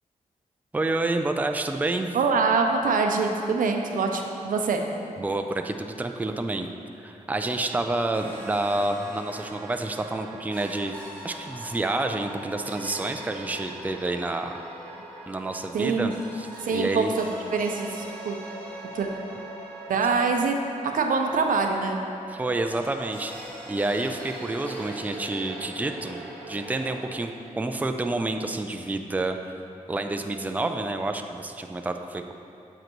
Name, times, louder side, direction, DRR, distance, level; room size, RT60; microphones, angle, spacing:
voice 1, 0.7-2.1 5.2-6.7 7.0-11.0 11.2-14.5 15.3-17.1 22.3-26.2 26.5-29.4 29.9-32.3, right 2 dB, 10° right, 5 dB, 0.4 m, -29 dB
voice 2, 2.1-4.8 15.7-16.1 16.6-18.4 18.9-19.1 19.9-20.6 20.8-22.0, right 4 dB, 85° right, 3 dB, 0.6 m, -24 dB
sound 1, 8.1-27.1, right 1 dB, 10° left, 1.7 m, -41 dB
7.8 x 7.6 x 3.0 m, 2.7 s
cardioid pair, 80°, 14 cm